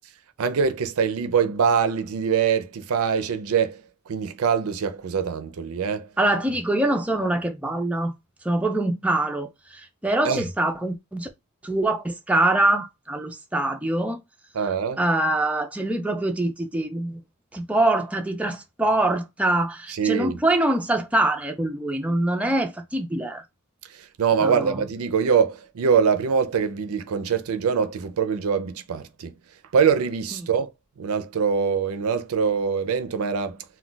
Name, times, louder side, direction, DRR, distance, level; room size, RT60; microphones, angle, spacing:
voice 1, 0.4-3.8 4.1-6.1 10.2-10.4 14.5-15.0 19.9-20.4 23.9-29.3 29.7-30.7 31.0-33.6, right 6 dB, 75° right, 0.4 m, -23 dB
voice 2, 6.2-8.1 8.4-11.3 11.6-14.2 15.0-17.2 17.5-23.4 24.4-24.8, right 1 dB, 5° right, 0.3 m, -24 dB
2.3 x 2.2 x 3.8 m
head